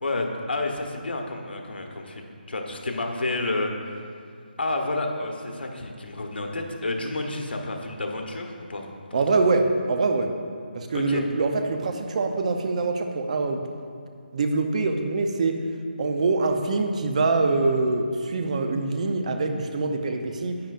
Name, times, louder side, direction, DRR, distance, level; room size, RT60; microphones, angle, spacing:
voice 1, 0.0-3.7 4.6-8.9 9.3-9.4 10.9-11.2, left 2 dB, 80° left, 2 dB, 1.2 m, -30 dB
voice 2, 9.1-10.3 10.7-13.6 14.3-15.6 16.0-20.6, right 3 dB, 40° right, 5 dB, 0.7 m, -24 dB
10.5 x 8.7 x 2.5 m, 2.2 s
figure-of-eight pair, 165°, 6 cm